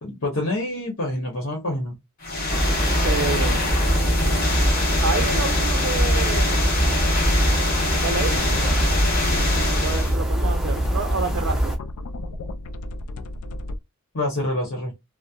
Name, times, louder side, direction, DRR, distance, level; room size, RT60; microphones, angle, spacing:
voice 1, 0.0-2.0 14.1-14.9, left 1 dB, 65° left, 1.0 m, -27 dB
sound 1, 2.2-10.2, left 1 dB, 40° left, 1.1 m, -24 dB
sound 2, 2.5-11.8, equal, ahead, 0.7 m, -23 dB
voice 2, 3.0-3.6 5.0-6.7 8.0-8.7 9.7-11.8, right 4 dB, 60° right, 0.5 m, -29 dB
sound 3, 8.4-13.8, left 1 dB, 85° left, 0.4 m, -34 dB
2.8 x 2.0 x 2.3 m
head